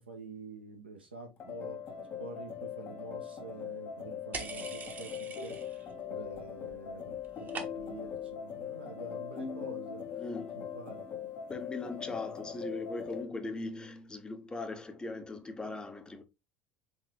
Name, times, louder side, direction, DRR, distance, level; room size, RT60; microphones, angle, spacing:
voice 1, 0.0-1.8 2.2-5.1 5.4-5.6 6.1-7.2 7.6-10.0 10.5-11.0, right 3 dB, 85° right, 1.2 m, -47 dB
sound 1, 1.4-13.3, left 8 dB, 40° left, 1.1 m, -41 dB
sound 2, 4.3-5.9 6.2-6.8 7.0-8.1, right 5 dB, 30° right, 1.0 m, -43 dB
voice 2, 10.2-10.6 11.5-16.2, left 2 dB, 15° left, 0.9 m, -39 dB
4.0 x 3.8 x 3.1 m
figure-of-eight pair, 70°, 6 cm